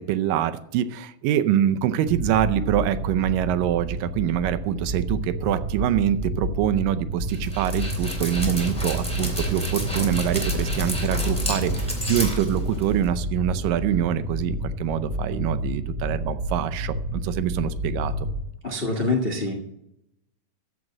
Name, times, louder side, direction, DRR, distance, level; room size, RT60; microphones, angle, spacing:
voice 1, 0.0-18.3, right 11 dB, 80° right, 11 dB, 2.3 m, -25 dB
sound 1, 2.1-18.4, equal, 20° right, 0.6 m, -30 dB
Dog, 7.3-13.1, right 1 dB, ahead, 2.1 m, -31 dB
voice 2, 18.6-19.5, left 2 dB, 80° left, 1 dB, 0.5 m, -25 dB
14.0 x 5.2 x 7.4 m, 0.80 s
omnidirectional pair, 4.0 m